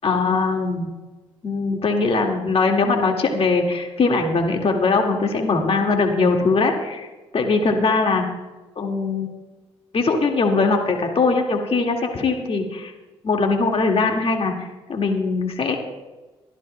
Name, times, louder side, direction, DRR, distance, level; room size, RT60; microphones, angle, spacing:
voice 1, 0.0-0.9 1.4-7.1 7.3-8.3 8.8-9.3 9.9-12.9 13.2-14.5 14.9-15.8, left 3 dB, 50° left, 2 dB, 2.0 m, -21 dB
23.0 x 13.0 x 2.2 m, 1.2 s
hypercardioid pair, 45°, 13 cm